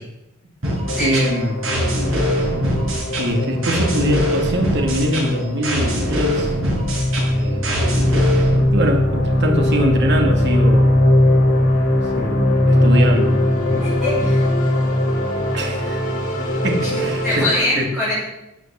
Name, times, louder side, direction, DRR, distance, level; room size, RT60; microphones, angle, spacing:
sound 1, 0.6-8.6, equal, 80° right, 6.9 m, -23 dB
sound 2, 0.8-17.5, left 1 dB, 40° left, 6.0 m, -20 dB
voice 1, 1.0-1.6 3.2-6.5 7.3-7.7 8.7-11.0 12.2-13.4 14.1-14.3 15.5-16.1 16.6-17.4 17.8-17.9, equal, 60° right, 3 dB, 2.4 m, -22 dB
voice 2, 13.8-14.4 16.8-18.1, left 1 dB, ahead, -9 dB, 5.7 m, -23 dB
14.5 x 9.0 x 7.6 m, 0.91 s
head